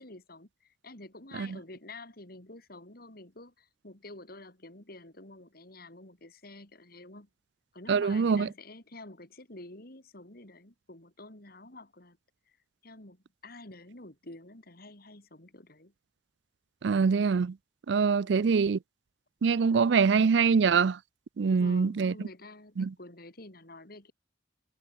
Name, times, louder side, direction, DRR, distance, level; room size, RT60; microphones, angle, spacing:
voice 1, 0.0-7.3 7.7-12.2 12.5-12.6 12.8-15.9 21.5-24.1, left 2 dB, 55° left, 4.2 m, -49 dB
voice 2, 7.9-8.5 16.8-17.6 17.9-18.8 19.4-21.0 21.4-22.1 22.8-22.9, right 5 dB, 70° right, 0.4 m, -24 dB
head